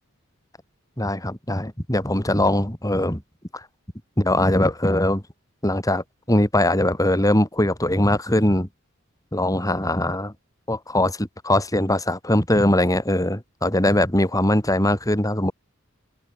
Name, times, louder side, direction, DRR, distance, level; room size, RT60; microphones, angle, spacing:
voice 1, 1.0-3.2 3.5-3.6 4.2-5.2 5.6-8.7 9.3-10.3 10.7-15.5, left 1 dB, 15° left, 4.2 m, -21 dB
open air
head